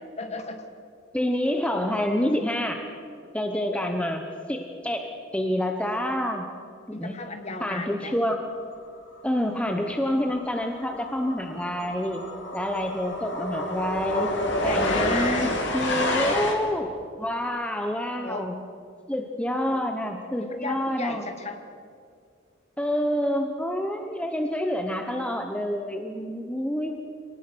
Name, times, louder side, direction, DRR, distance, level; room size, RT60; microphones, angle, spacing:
voice 1, 0.2-0.6 3.7-3.8 6.9-8.2 14.6-15.6 16.0-16.5 18.2-18.5 19.7-19.8 20.4-21.6, left 3 dB, 35° left, 7 dB, 1.6 m, -34 dB
voice 2, 1.1-2.9 3.3-4.2 4.5-6.4 6.9-7.2 7.6-8.4 9.2-12.3 12.5-14.3 14.6-16.9 17.2-18.6 19.1-21.2 22.8-27.0, equal, 5° left, 4 dB, 0.9 m, -27 dB
sound 1, 9.7-10.0 10.2-16.5, left 1 dB, 65° left, 2.7 m, -29 dB
24.0 x 18.5 x 6.2 m, 2.3 s
head